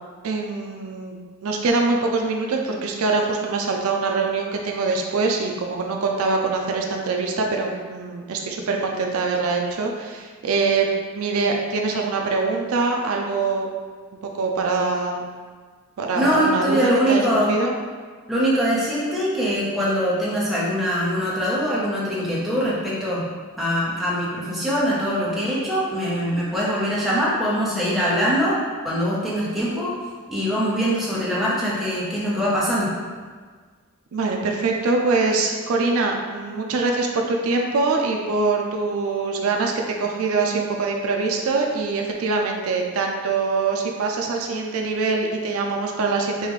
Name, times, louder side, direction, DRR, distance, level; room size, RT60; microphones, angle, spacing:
voice 1, 0.2-1.2 1.4-10.9 11.1-13.7 14.2-15.3 16.0-17.7 34.1-46.5, right 3 dB, 70° right, 1 dB, 0.4 m, -23 dB
voice 2, 16.1-17.5 18.3-23.2 23.6-28.6 28.8-29.9 30.3-32.9, equal, ahead, -8 dB, 0.9 m, -23 dB
5.3 x 2.4 x 3.2 m, 1.5 s
head